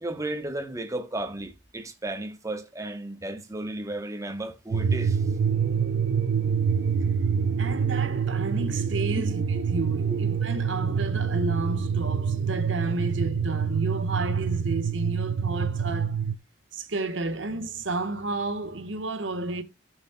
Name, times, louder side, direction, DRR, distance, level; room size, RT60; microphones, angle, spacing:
voice 1, 0.0-5.2 9.2-9.3 10.1-10.2, right 1 dB, 15° right, 0.9 m, -34 dB
sound 1, 4.7-16.3, right 6 dB, 60° right, 0.5 m, -26 dB
voice 2, 7.6-16.2 16.7-19.6, right 2 dB, 80° right, 1.3 m, -32 dB
15.5 x 6.2 x 2.2 m
head